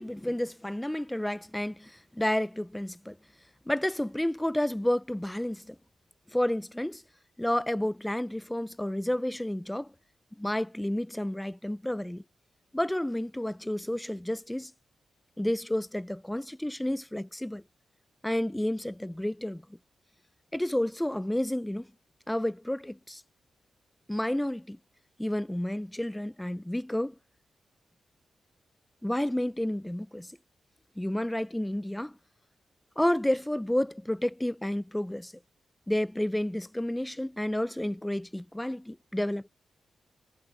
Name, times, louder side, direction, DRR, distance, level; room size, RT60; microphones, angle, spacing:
voice 1, 0.0-3.2 3.7-5.8 6.3-7.0 7.4-9.9 10.4-12.2 12.7-14.7 15.4-17.6 18.2-19.6 20.5-21.9 22.3-23.2 24.1-24.8 25.2-27.2 29.0-30.3 31.0-32.2 33.0-35.3 35.9-39.5, left 1 dB, 5° left, 0.4 m, -30 dB
wide cardioid pair, 120°, 0 cm